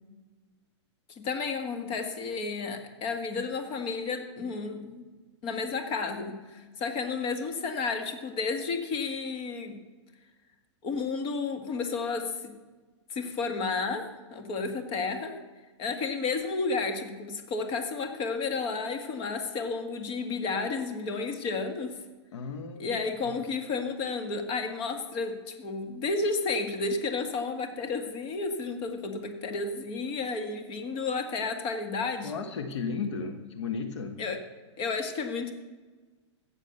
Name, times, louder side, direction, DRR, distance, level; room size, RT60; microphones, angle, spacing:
voice 1, 1.2-5.0 5.4-9.8 10.8-12.5 13.1-14.0 14.3-15.3 15.8-22.0 22.8-32.3 34.2-34.4 34.8-35.5, left 4 dB, 35° left, 5 dB, 2.0 m, -32 dB
voice 2, 22.3-23.4 32.2-34.2, left 5 dB, 75° left, 6 dB, 1.5 m, -35 dB
16.0 x 7.5 x 6.8 m, 1.3 s
hypercardioid pair, 125°, 15 cm